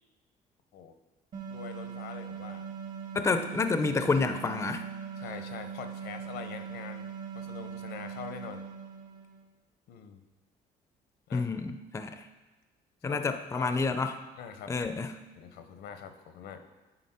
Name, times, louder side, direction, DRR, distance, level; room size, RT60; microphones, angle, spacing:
sound 1, 1.3-9.4, right 7 dB, 50° right, 1.4 m, -41 dB
voice 1, 1.5-2.7 3.1-3.3 5.2-7.1 7.3-8.6 9.9-10.2 11.3-11.5 13.0-13.2 13.5-13.7 14.4-14.7 15.4-16.6, left 7 dB, 80° left, 8 dB, 0.7 m, -44 dB
voice 2, 3.1-4.9 11.3-12.2 13.0-14.2 14.7-15.2, left 4 dB, 15° left, 9 dB, 0.4 m, -29 dB
9.9 x 4.0 x 4.3 m, 1.2 s
cardioid pair, 110°, 17 cm